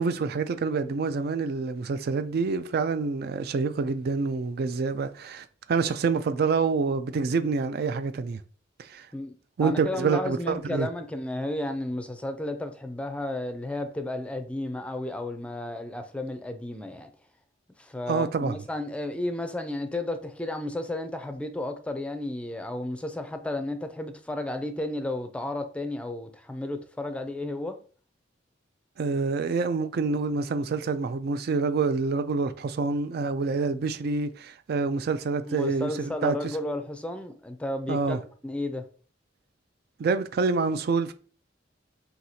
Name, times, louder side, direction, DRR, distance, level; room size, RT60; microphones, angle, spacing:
voice 1, 0.0-8.4 8.8-9.1 9.6-10.9 18.1-18.6 29.0-36.4 37.9-38.2 40.0-41.1, right 4 dB, 55° right, 0.4 m, -27 dB
voice 2, 9.6-17.1 17.8-27.8 35.5-38.9, left 1 dB, 5° left, 0.4 m, -33 dB
5.8 x 2.7 x 2.7 m
head